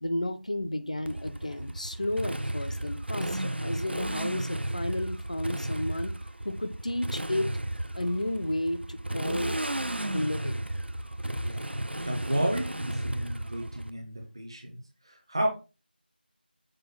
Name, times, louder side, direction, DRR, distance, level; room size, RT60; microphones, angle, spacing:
voice 1, 0.0-6.1 6.4-7.6 7.9-9.6 10.1-10.6, left 1 dB, 40° left, 0.4 m, -32 dB
Motorcycle, 1.1-13.9, right 1 dB, 85° right, 0.5 m, -34 dB
voice 2, 11.9-15.5, right 1 dB, 25° right, 0.7 m, -32 dB
6.2 x 2.2 x 3.6 m
figure-of-eight pair, 170°, 6 cm